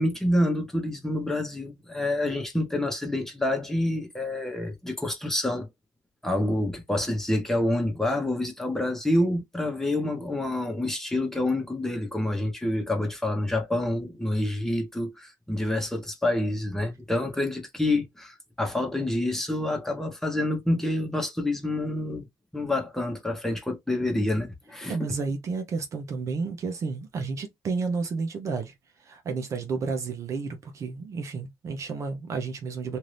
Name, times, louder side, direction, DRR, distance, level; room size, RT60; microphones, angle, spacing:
voice 1, 0.0-5.7 6.2-22.3 22.5-25.0, left 1 dB, 5° left, 1.1 m, -27 dB
voice 2, 24.9-28.7 29.0-33.0, right 4 dB, 50° right, 0.7 m, -31 dB
2.7 x 2.6 x 3.3 m
cardioid pair, 120°, 7 cm